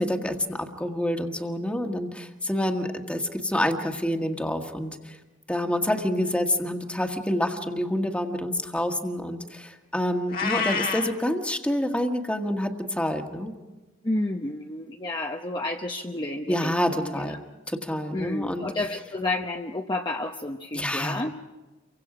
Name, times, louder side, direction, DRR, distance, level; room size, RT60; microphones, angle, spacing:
voice 1, 0.0-5.2 5.5-13.5 16.5-17.4 17.7-18.6 20.7-21.2, left 1 dB, 5° left, 4 dB, 1.5 m, -27 dB
Meow, 10.3-11.1, left 5 dB, 45° left, 1.8 m, -27 dB
voice 2, 14.0-16.7 17.0-17.3 18.1-21.3, left 2 dB, 20° left, 2 dB, 0.8 m, -30 dB
29.5 x 24.5 x 5.0 m, 1.2 s
head